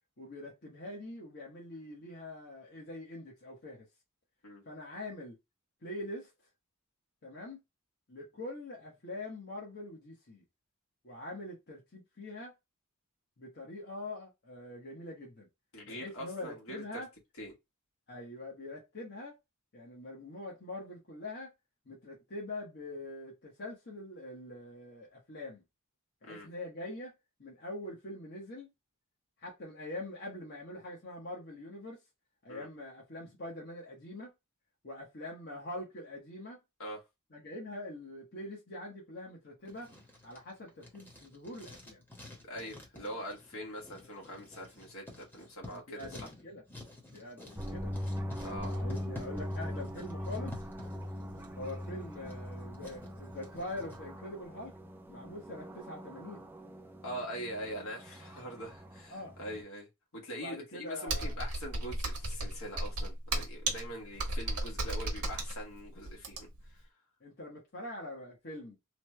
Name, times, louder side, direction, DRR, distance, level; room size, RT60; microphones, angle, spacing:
voice 1, 0.2-3.9 4.7-5.4 5.8-6.3 7.2-7.6 8.1-10.4 11.0-12.5 13.4-15.5 15.8-17.1 18.1-19.4 19.7-21.5 21.9-25.6 26.2-27.1 27.4-28.7 29.4-32.0 32.4-34.3 34.8-36.6 37.3-39.9 40.2-42.0 45.7-46.6 47.1-47.9 48.4-50.6 51.6-54.7 55.1-56.4 59.1-59.3 60.3-61.4 67.2-68.8, left 1 dB, 50° left, 1.0 m, -44 dB
voice 2, 15.7-17.0 17.4-17.5 26.2-26.5 32.5-32.7 36.8-37.0 42.4-46.3 48.4-48.7 57.0-66.9, equal, 75° left, 1.3 m, -43 dB
Writing, 39.6-54.0, left 2 dB, 10° left, 0.9 m, -51 dB
sound 1, 47.6-59.6, equal, 10° right, 0.4 m, -41 dB
Computer keyboard, 61.1-66.7, right 2 dB, 85° right, 1.0 m, -34 dB
3.1 x 2.2 x 3.0 m
head